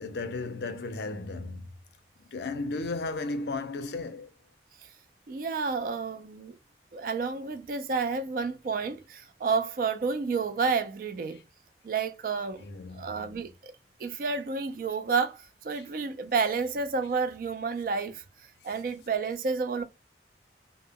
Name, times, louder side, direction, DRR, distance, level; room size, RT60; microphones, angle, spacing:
voice 1, 0.0-1.7 2.2-4.3 12.6-13.5, left 3 dB, 70° left, 0.5 m, -35 dB
voice 2, 5.3-6.5 6.9-11.4 11.8-12.6 12.9-13.7 14.0-15.4 15.6-18.2 18.6-19.8, right 5 dB, 50° right, 0.3 m, -30 dB
2.1 x 2.0 x 3.5 m
head